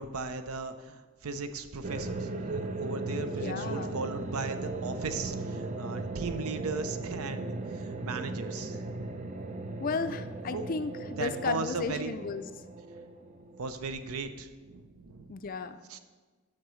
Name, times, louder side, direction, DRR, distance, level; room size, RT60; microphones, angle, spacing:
voice 1, 0.0-9.0 10.5-10.7 11.2-12.1 13.6-15.3 15.9-16.0, right 4 dB, 85° right, 9 dB, 0.6 m, -37 dB
sound 1, 1.8-13.9, right 2 dB, 35° right, 0.5 m, -37 dB
voice 2, 3.2-4.0 9.8-12.5 15.3-15.8, left 4 dB, 40° left, 10 dB, 0.4 m, -34 dB
12.5 x 5.9 x 3.1 m, 1.4 s
head